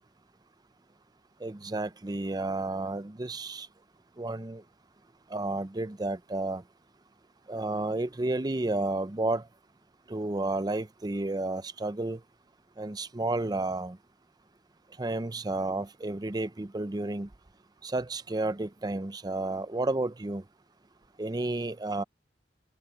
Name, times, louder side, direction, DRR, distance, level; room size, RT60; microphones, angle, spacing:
voice 1, 1.4-3.7 4.2-4.6 5.3-6.6 7.5-9.4 10.1-12.2 12.8-14.0 15.0-17.3 17.8-20.4 21.2-22.0, right 2 dB, 20° right, 0.5 m, -31 dB
head